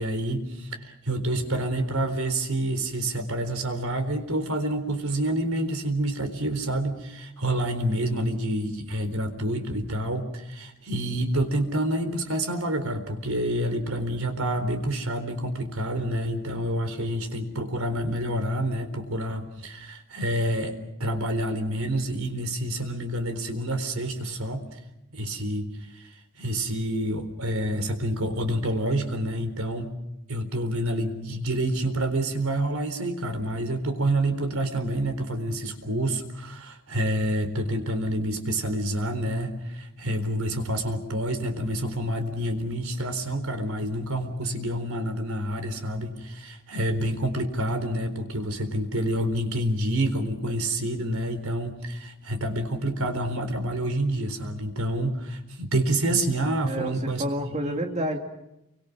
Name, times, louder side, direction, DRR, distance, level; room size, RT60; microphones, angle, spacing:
voice 1, 0.0-24.6 25.1-25.7 25.9-26.0 26.4-29.9 30.3-57.2 57.5-57.8, right 1 dB, 85° right, 8 dB, 4.0 m, -28 dB
voice 2, 56.6-58.2, equal, 35° right, 3 dB, 2.5 m, -29 dB
30.0 x 24.5 x 6.1 m, 0.87 s
head